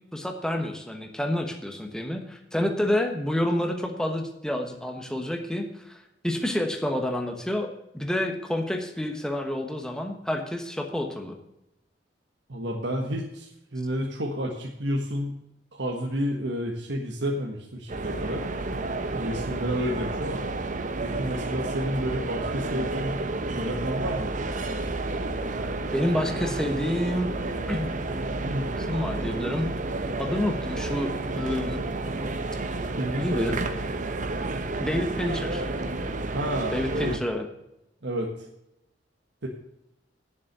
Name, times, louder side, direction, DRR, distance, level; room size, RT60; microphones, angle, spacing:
voice 1, 0.1-7.7 7.9-11.4 25.9-27.3 27.7-28.0 28.9-29.7 30.2-31.8 33.1-33.5 34.8-35.7 36.7-37.4, left 1 dB, 5° left, 3 dB, 1.2 m, -28 dB
voice 2, 12.5-15.4 15.7-18.4 19.1-20.4 21.0-23.2 23.5-24.3 28.4-28.7 33.0-33.6 36.3-37.2 38.0-38.5 39.4-39.5, equal, 70° right, 0 dB, 1.4 m, -30 dB
sound 1, 17.9-37.2, right 2 dB, 45° right, 1.0 m, -31 dB
9.8 x 7.4 x 6.6 m, 0.85 s
head